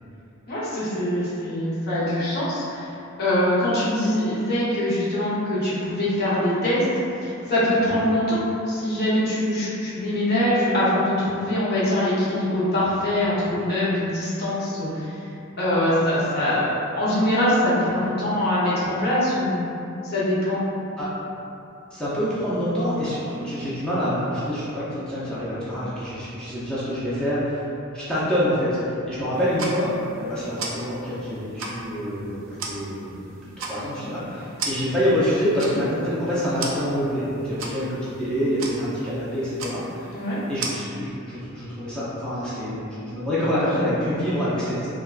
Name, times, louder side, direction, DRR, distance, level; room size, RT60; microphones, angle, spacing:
voice 1, 0.5-2.9 3.2-6.9 7.2-8.4 8.7-15.3 15.6-19.6 20.0-20.6 40.1-40.4, left 1 dB, 50° left, -9 dB, 0.8 m, -23 dB
voice 2, 21.9-27.6 27.9-29.9 30.2-40.1 40.5-44.9, equal, 5° left, -11 dB, 0.5 m, -26 dB
sound 1, 29.3-40.7, right 3 dB, 65° right, 0.4 m, -37 dB
3.3 x 2.2 x 2.3 m, 2.7 s
head